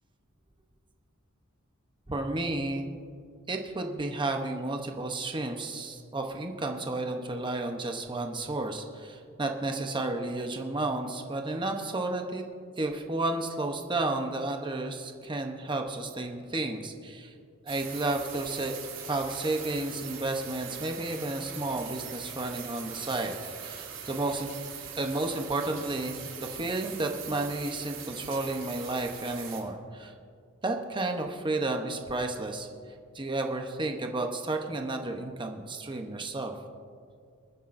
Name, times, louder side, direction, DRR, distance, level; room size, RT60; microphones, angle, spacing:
voice 1, 2.1-2.9 3.5-12.4 12.8-17.3 17.6-18.8 19.1-23.4 23.6-24.5 25.0-30.1 30.6-32.7 33.1-36.5, right 2 dB, 20° right, 3 dB, 0.8 m, -32 dB
sound 1, 17.7-29.6, right 7 dB, 60° right, 3.3 m, -42 dB
25.5 x 9.9 x 2.6 m, 2.3 s
head